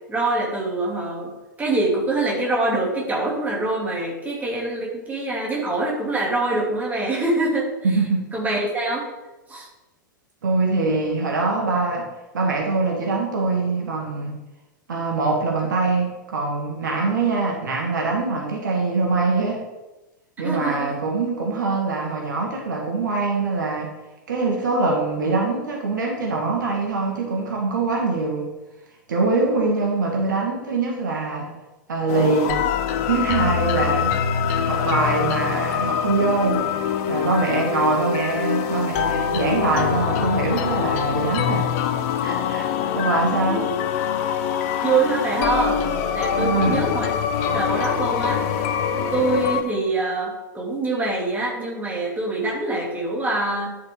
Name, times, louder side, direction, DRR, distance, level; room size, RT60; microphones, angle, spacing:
voice 1, 0.1-1.3 1.6-7.7 8.3-9.1 9.5-9.7 20.4-21.0 43.5-43.7 44.8-45.8 46.1-47.1 47.4-48.4 49.1-53.7, right 2 dB, 15° right, -3 dB, 2.8 m, -24 dB
voice 2, 7.8-8.3 10.4-12.1 12.3-14.4 14.9-19.6 20.4-23.9 24.3-28.5 29.1-31.5 31.9-32.6 33.1-36.7 37.1-41.7 42.2-42.7 42.9-43.7 46.3-46.9, right 3 dB, 65° right, 0 dB, 1.8 m, -23 dB
sound 1, 32.1-49.6, left 8 dB, 45° left, 0.7 m, -24 dB
10.5 x 5.8 x 3.8 m, 1.1 s
figure-of-eight pair, 95°, 11 cm